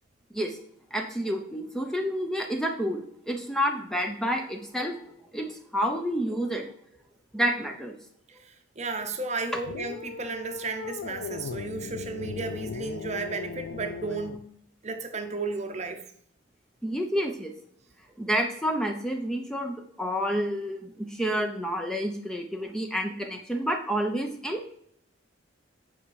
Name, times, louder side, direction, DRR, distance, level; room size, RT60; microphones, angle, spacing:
voice 1, 0.9-5.0 5.3-6.7 7.3-7.9 16.8-17.5 18.2-24.6, equal, 5° left, 3 dB, 0.7 m, -29 dB
voice 2, 8.8-14.5 14.8-16.0, right 3 dB, 35° right, 7 dB, 0.8 m, -33 dB
sound 1, 9.6-14.4, left 5 dB, 80° left, 0.4 m, -38 dB
8.5 x 5.4 x 4.7 m, 0.67 s
head